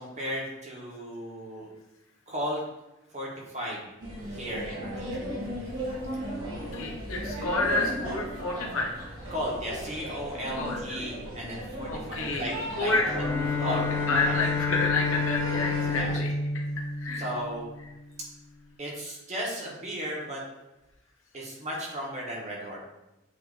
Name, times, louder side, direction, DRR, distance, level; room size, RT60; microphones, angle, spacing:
voice 1, 0.0-1.7 2.3-2.6 3.1-3.3 3.5-3.8 4.3-5.2 9.3-13.3 13.6-14.4 15.9-16.2 17.1-17.7 18.8-20.4 21.3-22.8, equal, 35° right, -3 dB, 1.5 m, -35 dB
sound 1, 4.0-16.2, equal, 75° right, 2.0 m, -36 dB
voice 2, 6.5-9.1 10.6-11.0 11.9-13.0 13.7-13.8 14.1-16.3 17.0-17.3, left 2 dB, 85° left, -2 dB, 1.3 m, -29 dB
Bowed string instrument, 13.0-17.9, left 4 dB, 15° left, 0.8 m, -30 dB
8.1 x 3.0 x 4.1 m, 0.96 s
head